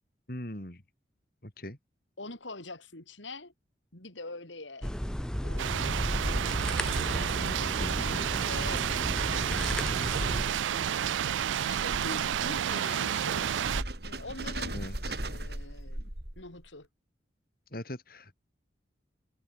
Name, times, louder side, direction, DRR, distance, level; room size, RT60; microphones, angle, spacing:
voice 1, 0.3-0.8 1.4-1.8 7.1-8.2 14.7-15.2 17.7-18.3, left 1 dB, 50° left, 3.8 m, -41 dB
voice 2, 2.2-3.5 3.9-4.9 5.4-6.7 7.6-8.9 9.3-13.5 14.0-14.8 15.2-16.9, left 2 dB, 90° left, 5.2 m, -45 dB
sound 1, 4.8-10.5, equal, 5° left, 0.4 m, -33 dB
sound 2, 5.6-13.8, right 9 dB, 90° right, 0.4 m, -30 dB
sound 3, 12.8-16.7, right 1 dB, 60° right, 4.9 m, -40 dB
head